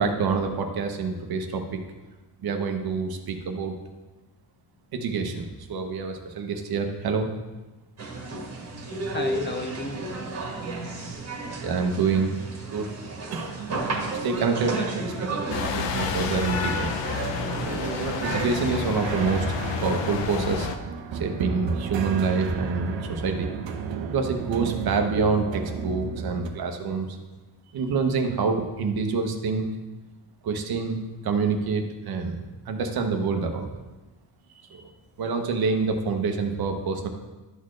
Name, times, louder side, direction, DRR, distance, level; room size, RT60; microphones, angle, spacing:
voice 1, 0.0-1.8 2.4-3.7 4.9-7.3 11.6-12.3 12.7-12.9 13.3-16.9 17.7-19.6 19.8-20.7 21.1-23.5 24.0-27.2 27.7-29.7 30.4-33.7 34.6-34.9 35.2-37.1, right 4 dB, 55° right, 4 dB, 0.9 m, -27 dB
sound 1, 8.0-18.9, right 3 dB, 35° right, 1.5 m, -32 dB
voice 2, 8.7-10.0 14.8-14.9 16.0-16.2 18.6-19.0, left 2 dB, 25° left, 4 dB, 0.5 m, -35 dB
sound 2, 15.5-20.8, left 7 dB, 80° left, 0.6 m, -30 dB
sound 3, 19.0-26.5, right 6 dB, 80° right, 0.8 m, -33 dB
12.0 x 4.2 x 3.2 m, 1.2 s
cardioid pair, 160°, 44 cm